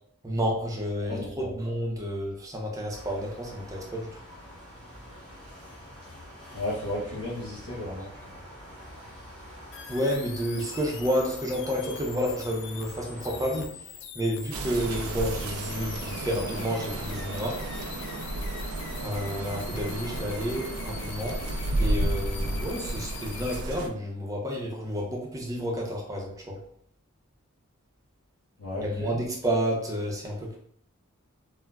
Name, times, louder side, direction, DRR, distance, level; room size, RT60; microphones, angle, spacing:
voice 1, 0.2-4.2 9.9-17.6 19.0-21.4 21.8-26.6 28.8-30.6, equal, 15° right, -2 dB, 0.5 m, -30 dB
voice 2, 1.1-1.5 6.5-8.4 28.6-29.2, left 1 dB, 85° left, -6 dB, 1.0 m, -34 dB
sound 1, 2.9-13.7, equal, 5° left, 1.1 m, -46 dB
sound 2, 9.7-23.6, left 8 dB, 55° left, 0.3 m, -43 dB
sound 3, 14.5-23.9, right 2 dB, 85° right, 0.4 m, -32 dB
3.5 x 2.1 x 2.2 m, 0.64 s
head